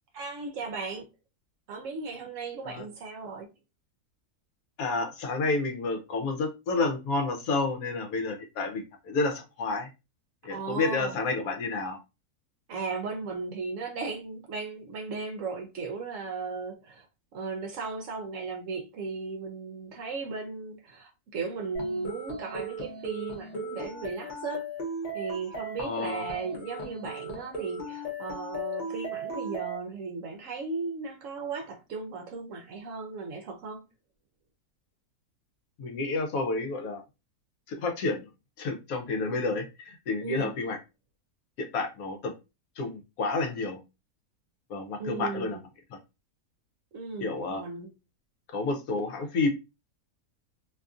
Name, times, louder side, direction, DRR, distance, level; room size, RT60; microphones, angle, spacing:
voice 1, 0.1-1.1 1.7-3.5 10.5-11.1 12.7-17.1 17.3-24.7 25.1-33.9 40.2-40.5 45.0-45.6 46.9-47.9, right 4 dB, 65° right, 0.8 m, -36 dB
voice 2, 4.8-9.9 10.4-12.0 25.8-26.2 35.8-37.0 37.7-38.3 38.6-40.8 41.6-42.3 42.8-43.8 44.7-45.6 47.2-47.6 48.5-49.5, left 3 dB, 75° left, 1.1 m, -30 dB
sound 1, 21.7-29.8, right 1 dB, 40° left, 0.7 m, -37 dB
2.8 x 2.5 x 2.3 m
omnidirectional pair, 1.6 m